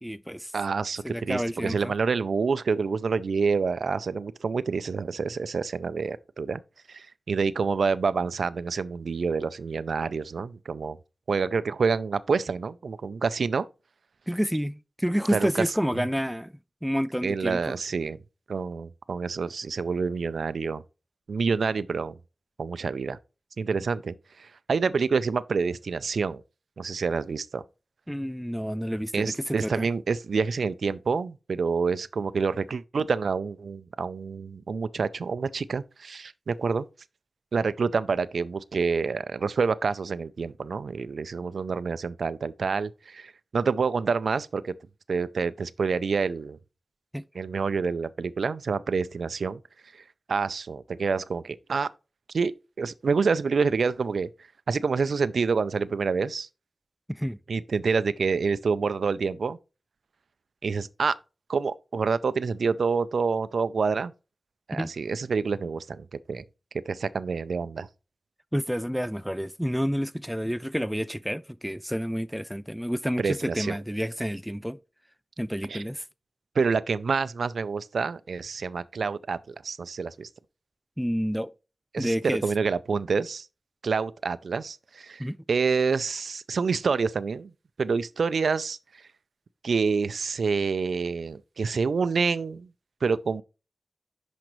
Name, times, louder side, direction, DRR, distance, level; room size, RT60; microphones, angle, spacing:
voice 1, 0.0-0.5 1.0-1.9 14.3-16.5 16.8-17.8 28.1-29.9 47.1-47.2 57.1-57.4 64.7-64.9 68.5-74.8 75.4-76.0 81.0-81.5 82.0-82.4 85.2-85.4, equal, ahead, 0.4 m, -29 dB
voice 2, 0.5-6.6 6.9-11.0 11.3-13.7 15.3-15.6 15.9-16.0 17.2-18.2 18.5-20.8 21.3-22.2 22.6-23.2 23.6-26.4 26.8-27.6 29.1-36.9 37.5-44.7 45.1-46.6 47.3-49.6 50.3-51.9 52.3-52.5 52.8-54.3 54.7-56.5 57.5-59.6 60.6-61.2 61.5-64.1 64.7-66.4 66.9-67.9 73.2-73.8 75.7-75.8 76.6-80.3 81.9-83.5 83.8-87.5 87.8-88.8 89.6-92.7 93.0-93.4, right 5 dB, 90° right, 0.4 m, -27 dB
10.5 x 5.1 x 3.0 m
cardioid pair, 55°, 0 cm